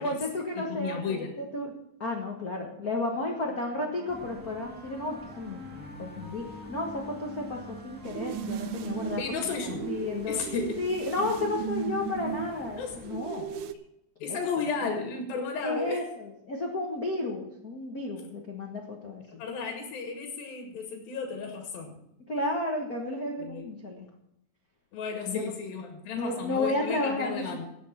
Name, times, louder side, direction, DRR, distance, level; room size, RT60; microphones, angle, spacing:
voice 1, 0.0-1.7 2.0-10.4 10.8-13.5 14.2-14.4 15.6-19.4 22.3-24.1 25.3-25.4 26.1-27.6, left 2 dB, 65° left, 0 dB, 0.8 m, -32 dB
voice 2, 0.6-1.3 9.2-9.9 10.3-10.8 12.8-13.0 14.2-16.0 19.4-22.0 23.4-23.6 24.9-27.7, left 5 dB, 90° left, 3 dB, 3.3 m, -33 dB
Wind instrument woodwind instrument, 3.0-10.4, left 1 dB, 40° right, 1.2 m, -49 dB
sound 1, 4.1-13.2, right 1 dB, 5° right, 1.3 m, -49 dB
sound 2, 8.0-13.7, right 9 dB, 80° right, 2.2 m, -36 dB
17.0 x 7.1 x 5.8 m, 0.82 s
omnidirectional pair, 4.0 m